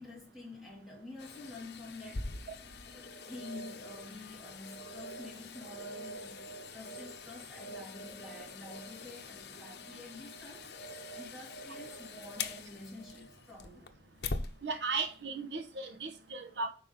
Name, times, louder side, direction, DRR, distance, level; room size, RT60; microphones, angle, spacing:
voice 1, 0.0-2.4 2.8-13.9, left 2 dB, ahead, 3.3 m, -49 dB
sound 1, 1.2-14.5 15.0-15.1, left 3 dB, 65° left, 0.9 m, -44 dB
voice 2, 14.6-16.7, right 4 dB, 80° right, 1.1 m, -36 dB
8.7 x 5.5 x 4.1 m
head